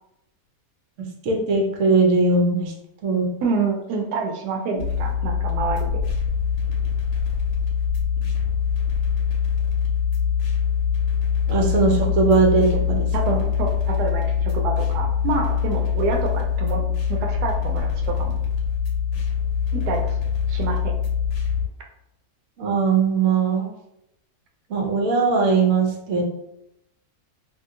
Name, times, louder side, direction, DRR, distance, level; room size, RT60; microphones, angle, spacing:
voice 1, 1.2-2.7 3.0-3.3 11.5-13.4 22.6-23.7 24.7-26.2, right 4 dB, 60° right, 0 dB, 0.9 m, -20 dB
voice 2, 3.4-5.9 13.1-18.3 19.7-20.2 20.5-20.9, right 4 dB, 85° right, 2 dB, 1.1 m, -27 dB
sound 1, 4.8-21.7, left 7 dB, 80° left, 1.1 m, -23 dB
2.7 x 2.7 x 2.6 m, 0.81 s
omnidirectional pair, 1.7 m